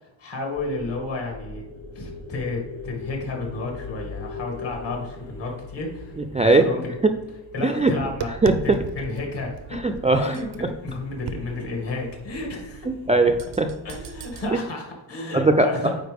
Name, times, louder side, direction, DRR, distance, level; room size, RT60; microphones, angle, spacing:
voice 1, 0.2-1.6 1.9-6.2 6.6-6.9 7.5-8.3 8.6-9.8 10.1-12.9 13.8-15.9, left 2 dB, 65° left, 1 dB, 2.3 m, -31 dB
sound 1, 0.5-8.7, left 3 dB, 85° left, 1.3 m, -40 dB
voice 2, 6.2-6.7 7.6-7.9 8.4-8.8 9.7-10.4 12.9-13.7 15.3-15.9, right 2 dB, 15° right, 5 dB, 0.3 m, -20 dB
Tap, 7.8-14.5, right 7 dB, 75° right, 0.6 m, -38 dB
9.1 x 4.3 x 3.4 m, 1.1 s
cardioid pair, 110°, 45 cm